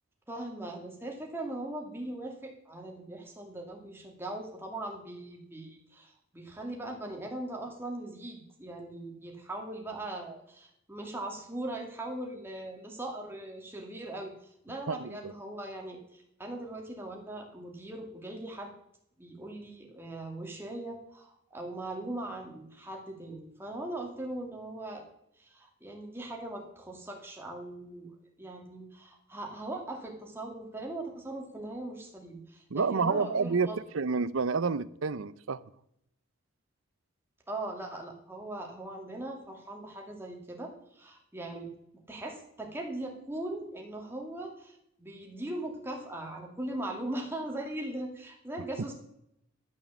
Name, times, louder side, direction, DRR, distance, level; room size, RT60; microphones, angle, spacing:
voice 1, 0.3-14.3 14.6-18.7 19.2-25.0 25.4-28.1 28.4-33.8 37.5-41.7 42.1-48.9, right 1 dB, 10° right, 2.2 m, -40 dB
voice 2, 14.9-15.3 32.7-33.7 33.9-35.6, right 5 dB, 80° right, 0.6 m, -29 dB
12.0 x 6.4 x 7.1 m
head